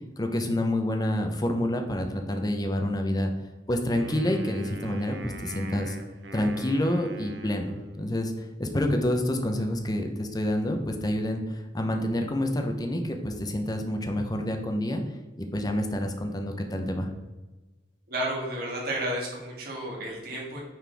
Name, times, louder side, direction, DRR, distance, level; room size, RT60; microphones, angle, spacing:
voice 1, 0.2-3.3 3.7-6.0 6.3-8.3 8.6-15.0 15.4-17.1, left 1 dB, 20° left, 4 dB, 0.8 m, -28 dB
Wind instrument woodwind instrument, 3.9-8.4, right 2 dB, 75° right, 0.8 m, -42 dB
voice 2, 18.1-20.6, right 1 dB, 55° right, -4 dB, 2.5 m, -32 dB
9.3 x 4.4 x 3.5 m, 1.2 s
head